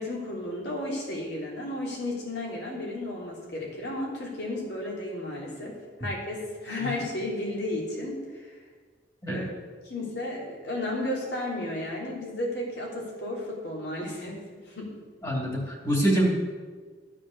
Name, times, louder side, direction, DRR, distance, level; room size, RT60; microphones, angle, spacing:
voice 1, 0.0-5.8 6.0-8.5 9.3-9.5 9.8-14.4 14.7-14.9, left 1 dB, 65° left, -3 dB, 3.4 m, -33 dB
voice 2, 15.2-16.3, right 1 dB, 20° left, -1 dB, 2.7 m, -25 dB
13.0 x 7.4 x 6.7 m, 1.5 s
head